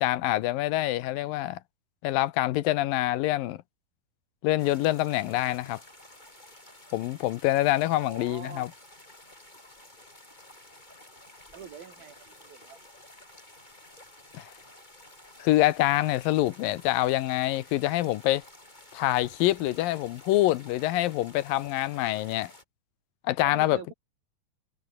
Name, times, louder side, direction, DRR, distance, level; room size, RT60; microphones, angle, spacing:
voice 1, 0.0-1.6 2.0-3.6 4.4-5.8 6.9-8.7 14.3-14.5 15.4-18.4 18.9-22.5 23.2-23.8, left 16 dB, 85° left, 2.6 m, -26 dB
sound 1, 4.6-22.6, left 1 dB, 10° left, 5.4 m, -52 dB
voice 2, 7.8-8.7 11.5-12.8 23.4-23.9, right 8 dB, 90° right, 4.9 m, -44 dB
omnidirectional pair, 4.1 m